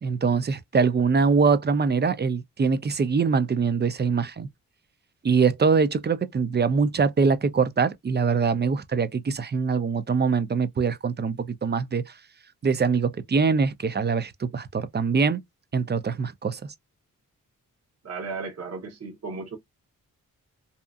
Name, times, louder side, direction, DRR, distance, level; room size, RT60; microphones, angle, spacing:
voice 1, 0.0-4.5 5.2-12.2 12.6-15.4 15.7-16.7, right 5 dB, 30° right, 0.5 m, -23 dB
voice 2, 18.0-19.6, right 4 dB, 45° right, 1.0 m, -35 dB
2.8 x 2.4 x 2.3 m
cardioid pair, 75°, 35 cm